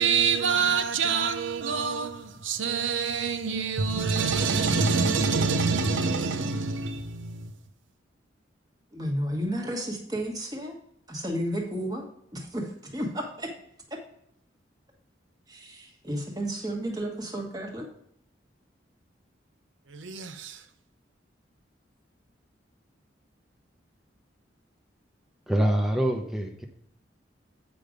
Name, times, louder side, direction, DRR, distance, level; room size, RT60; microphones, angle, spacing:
voice 1, 0.0-7.5 19.9-20.6, right 5 dB, 85° right, 0.7 m, -26 dB
voice 2, 8.9-10.7 11.1-12.0 12.3-13.5 15.5-17.9, equal, 20° right, 1.4 m, -32 dB
voice 3, 25.5-26.7, right 1 dB, ahead, 0.7 m, -25 dB
8.5 x 5.2 x 5.0 m
head